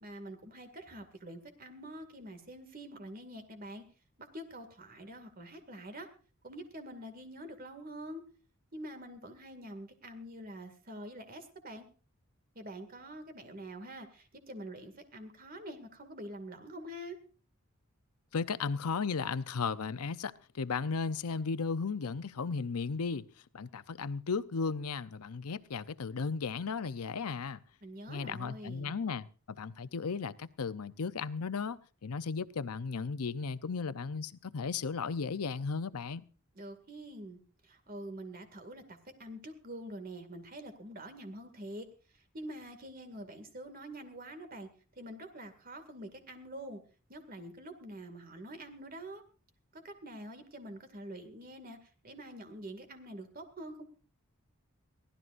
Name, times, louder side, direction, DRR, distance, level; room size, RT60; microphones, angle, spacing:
voice 1, 0.0-3.9 4.2-6.1 6.4-8.2 8.7-11.9 12.6-17.2 27.8-28.9 36.5-41.9 42.1-44.7 45.0-46.8 47.1-49.2 49.7-53.9, right 1 dB, 40° right, 2.2 m, -46 dB
voice 2, 18.3-23.2 23.5-27.6 28.1-36.2, left 5 dB, 80° left, 0.7 m, -35 dB
23.5 x 16.0 x 2.5 m
head